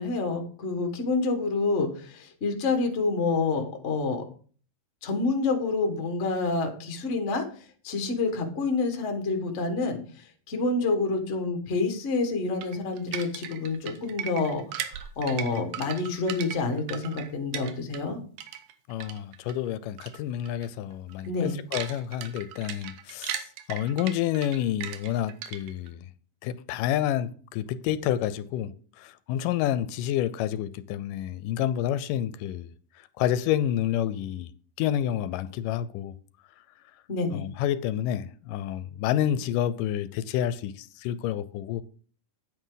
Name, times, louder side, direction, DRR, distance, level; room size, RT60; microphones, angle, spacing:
voice 1, 0.0-4.2 5.0-7.4 7.8-10.0 10.5-18.2 21.3-21.6 37.1-37.4, left 3 dB, 40° left, 1.0 m, -28 dB
sound 1, 12.6-18.1 18.4-19.5 20.0-20.2 20.4-20.7 21.1-25.9, right 10 dB, 85° right, 2.6 m, -38 dB
voice 2, 18.9-23.4 23.7-26.1 26.4-28.7 29.0-32.7 33.2-34.5 34.8-36.1 37.3-41.8, left 11 dB, 85° left, 2.1 m, -29 dB
9.4 x 9.0 x 3.9 m
omnidirectional pair, 3.8 m